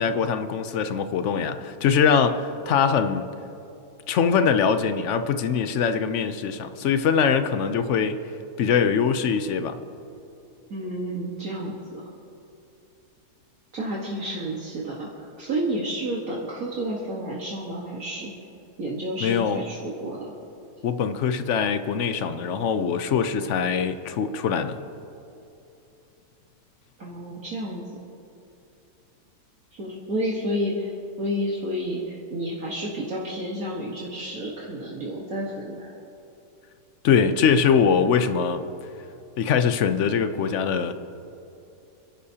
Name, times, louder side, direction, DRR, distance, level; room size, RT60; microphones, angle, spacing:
voice 1, 0.0-3.3 4.1-8.2 8.6-9.8 19.2-19.6 20.8-24.8 37.0-38.6 39.4-40.9, left 6 dB, 60° left, 10 dB, 0.9 m, -22 dB
voice 2, 10.7-12.0 13.7-18.3 18.8-20.3 27.0-27.8 29.7-35.9, equal, 60° right, -5 dB, 2.0 m, -30 dB
29.0 x 11.5 x 2.9 m, 2.8 s
omnidirectional pair, 1.8 m